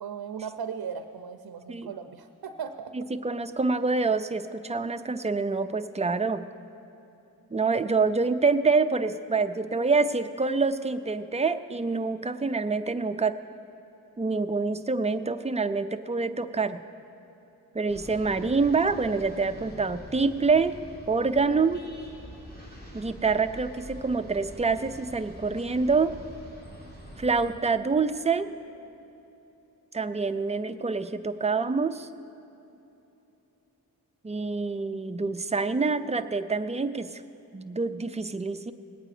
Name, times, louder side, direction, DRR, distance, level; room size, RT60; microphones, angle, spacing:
voice 1, 0.0-2.9 21.5-21.6, right 7 dB, 70° right, 7 dB, 0.6 m, -37 dB
voice 2, 2.9-6.4 7.5-13.4 14.2-16.8 17.7-20.8 21.1-21.8 22.9-26.1 27.2-28.5 29.9-32.1 34.2-37.2 37.5-38.7, right 4 dB, 20° right, 9 dB, 0.5 m, -26 dB
sound 1, 17.9-27.5, equal, 25° left, 2.7 m, -45 dB
19.5 x 8.8 x 4.9 m, 3.0 s
wide cardioid pair, 80°, 38 cm